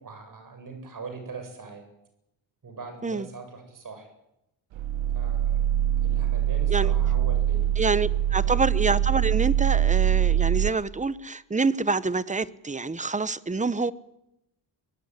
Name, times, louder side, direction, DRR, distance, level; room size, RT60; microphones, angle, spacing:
voice 1, 0.0-1.8 2.6-4.1 5.1-5.7 6.0-8.7, right 4 dB, 45° right, 7.6 m, -41 dB
sound 1, 4.7-10.7, right 11 dB, 90° right, 1.0 m, -23 dB
voice 2, 7.8-13.9, right 4 dB, 15° right, 0.9 m, -26 dB
23.0 x 18.0 x 9.9 m
cardioid pair, 115°, 45 cm